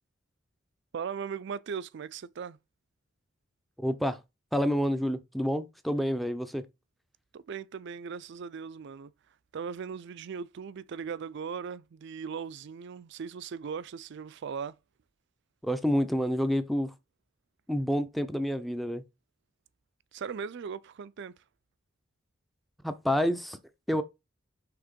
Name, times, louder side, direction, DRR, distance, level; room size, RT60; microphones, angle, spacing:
voice 1, 0.9-2.6 7.3-9.1 9.5-14.7 20.1-21.4, right 6 dB, 60° right, 0.4 m, -38 dB
voice 2, 3.8-4.2 4.5-6.7 15.6-16.9 17.7-19.0 22.8-23.6 23.9-24.0, equal, ahead, 0.4 m, -28 dB
5.8 x 3.5 x 5.1 m
head